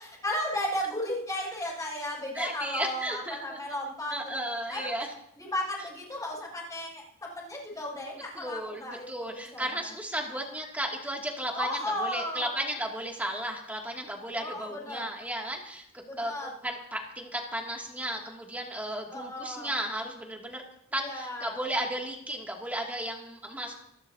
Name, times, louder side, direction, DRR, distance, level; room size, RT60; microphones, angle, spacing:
voice 1, 0.2-4.4 4.7-5.1 5.3-9.9 11.5-12.5 14.4-15.1 16.0-16.5 19.1-19.7 20.9-21.6, left 1 dB, 15° left, -3 dB, 6.9 m, -35 dB
voice 2, 2.3-3.6 4.1-5.1 8.3-16.3 16.6-20.6 20.9-23.7, right 1 dB, 5° right, -1 dB, 2.6 m, -34 dB
27.0 x 13.0 x 2.9 m, 0.73 s
head